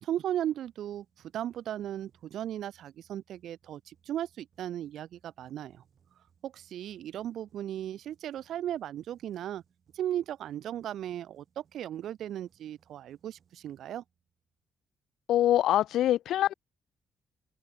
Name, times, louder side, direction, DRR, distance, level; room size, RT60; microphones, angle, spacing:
voice 1, 0.0-1.1 1.3-5.8 6.4-9.6 9.9-14.0, right 11 dB, 75° right, 0.5 m, -36 dB
sound 1, 0.6-14.5, right 7 dB, 55° right, 7.4 m, -70 dB
voice 2, 15.3-16.5, left 12 dB, 80° left, 0.3 m, -24 dB
cardioid pair, 90°, 0 cm